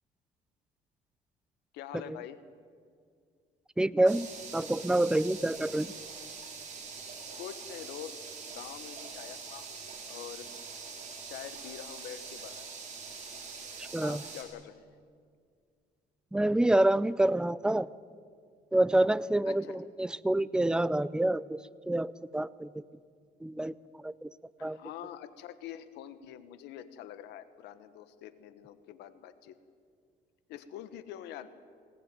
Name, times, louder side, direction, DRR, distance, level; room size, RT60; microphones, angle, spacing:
voice 1, 1.7-2.4 7.4-8.1 8.4-10.5 11.3-12.7 14.0-14.9 19.4-19.8 24.6-29.5 30.5-31.5, left 11 dB, 85° left, 12 dB, 1.4 m, -45 dB
voice 2, 3.8-5.9 13.9-14.2 16.3-17.9 18.7-22.8 23.4-23.7 24.0-24.3 24.6-24.8, right 1 dB, 5° right, 18 dB, 0.5 m, -27 dB
sound 1, 4.1-14.4, right 5 dB, 45° right, 5.5 m, -44 dB
21.0 x 18.5 x 9.2 m, 2.1 s
cardioid pair, 110°, 17 cm